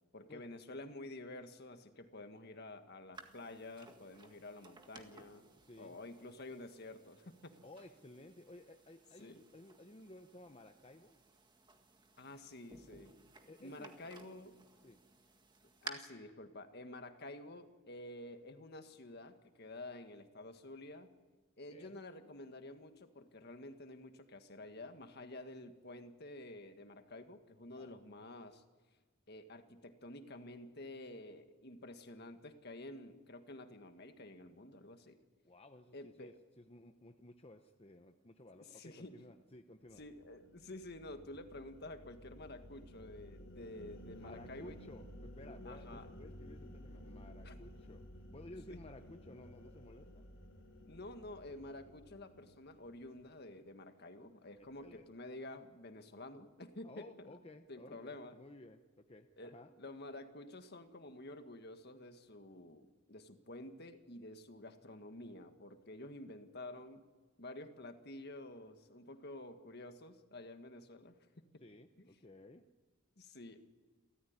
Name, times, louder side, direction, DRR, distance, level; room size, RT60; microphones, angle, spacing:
voice 1, 0.1-5.4 5.8-7.6 9.2-9.4 12.2-13.2 13.6-14.6 15.8-21.2 21.6-28.6 29.3-35.2 35.9-36.4 38.6-39.2 40.0-44.8 45.7-46.1 47.4-47.6 48.7-48.8 50.8-57.4 57.7-58.4 59.4-67.1 67.4-71.5 72.0-72.1 73.2-73.7, left 2 dB, 55° left, 7 dB, 1.7 m, -50 dB
sound 1, 3.1-15.9, right 3 dB, 20° right, 1.9 m, -56 dB
voice 2, 7.6-11.2 13.4-13.9 14.8-15.0 21.7-22.0 27.8-27.9 35.4-40.0 44.2-48.0 48.3-50.3 54.6-55.1 56.8-59.3 59.5-59.7 71.6-72.6, left 1 dB, 30° left, 6 dB, 0.9 m, -56 dB
sound 2, 39.9-53.4, equal, 80° left, 3.1 m, -54 dB
28.5 x 14.0 x 9.6 m, 1.3 s
head